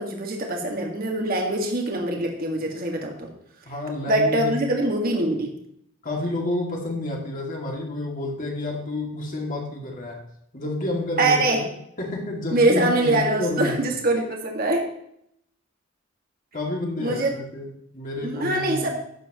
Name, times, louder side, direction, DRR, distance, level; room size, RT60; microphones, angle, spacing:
voice 1, 0.0-3.3 4.1-5.6 11.2-11.6 12.5-14.8 17.0-17.3 18.2-18.9, right 2 dB, 45° right, 1 dB, 1.9 m, -23 dB
voice 2, 3.7-4.7 6.0-10.2 10.5-11.7 12.0-13.9 16.5-18.9, left 1 dB, 40° left, -1 dB, 2.4 m, -29 dB
12.5 x 9.1 x 3.1 m, 0.73 s
head